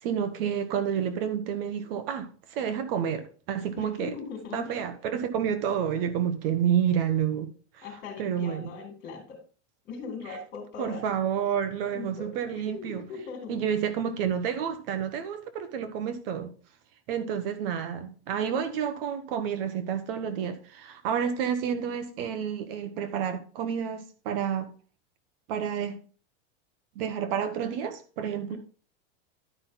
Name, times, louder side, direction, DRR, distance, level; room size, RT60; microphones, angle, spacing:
voice 1, 0.0-4.1 4.5-7.8 8.2-8.7 10.8-13.0 13.5-16.5 17.1-24.7 25.5-26.0 26.9-28.6, right 8 dB, 55° right, 1.3 m, -29 dB
voice 2, 3.8-4.7 7.8-9.4 9.9-11.0 11.9-12.3 12.7-13.6 28.5-28.6, left 5 dB, 30° left, 4.3 m, -39 dB
11.5 x 5.8 x 3.9 m
supercardioid pair, 150°, 34 cm